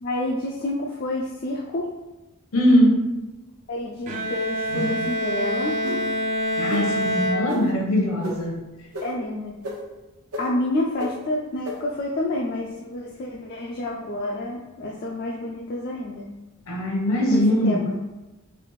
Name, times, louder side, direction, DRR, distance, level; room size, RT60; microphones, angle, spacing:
voice 1, 0.0-1.9 3.7-5.8 9.0-9.5 10.4-16.3 17.3-18.0, left 1 dB, 45° left, -3 dB, 0.3 m, -29 dB
voice 2, 2.5-3.1 6.6-8.6 16.7-17.9, equal, 70° left, 0 dB, 0.8 m, -21 dB
Bowed string instrument, 4.1-8.1, equal, 35° right, 0.4 m, -26 dB
sound 1, 4.7-5.1 5.8-6.0 6.7-6.8 7.5-7.6 8.2-8.3 8.9-9.0 9.6-9.7 10.3-10.4 11.0-11.1 11.6-11.7, equal, 80° right, 0.8 m, -30 dB
3.3 x 2.4 x 3.1 m, 1.1 s
head